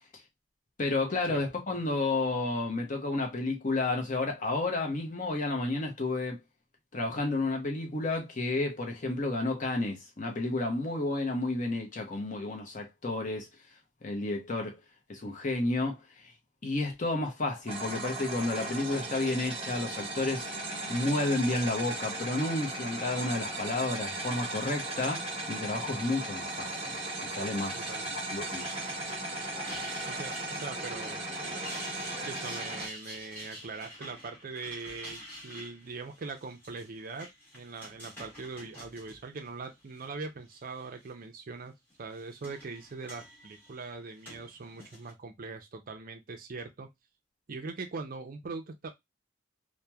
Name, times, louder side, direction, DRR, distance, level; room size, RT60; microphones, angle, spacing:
voice 1, 0.8-6.4 6.9-13.5 14.0-14.8 15.1-16.3 16.6-20.5 20.9-26.9 27.2-27.8 28.1-28.7, left 2 dB, 40° left, 0.7 m, -31 dB
sound 1, 17.7-32.9, right 2 dB, 30° right, 0.9 m, -37 dB
voice 2, 27.7-28.1 30.1-31.2 32.2-41.7 42.0-46.9 47.5-48.9, right 4 dB, 45° right, 0.4 m, -41 dB
sound 2, 28.3-40.1 40.5-41.1 41.9-45.1, equal, 10° left, 1.1 m, -48 dB
2.9 x 2.1 x 2.2 m
head